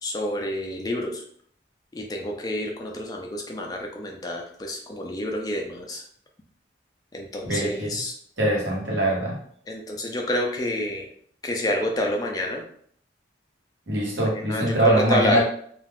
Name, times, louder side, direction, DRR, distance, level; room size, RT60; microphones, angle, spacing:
voice 1, 0.0-1.2 1.9-6.0 7.1-8.1 9.7-11.1 11.4-12.6 14.2-15.4, left 1 dB, 20° left, 1 dB, 0.3 m, -28 dB
voice 2, 7.4-8.0 8.4-9.4 13.9-15.4, right 1 dB, 80° right, -3 dB, 1.0 m, -23 dB
2.3 x 2.2 x 3.3 m, 0.62 s
head